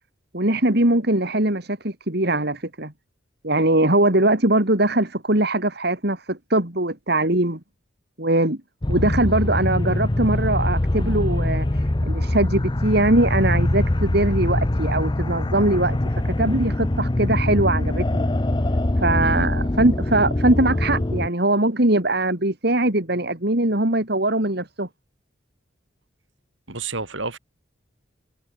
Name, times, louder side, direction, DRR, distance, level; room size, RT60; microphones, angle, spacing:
voice 1, 0.3-2.9 3.4-7.6 8.2-8.6 8.9-11.7 12.0-16.0 16.4-18.3 19.0-24.9, right 1 dB, 55° right, 3.3 m, -21 dB
sound 1, 8.8-21.3, left 1 dB, 25° left, 0.7 m, -23 dB
voice 2, 26.7-27.4, right 3 dB, 75° right, 5.9 m, -30 dB
head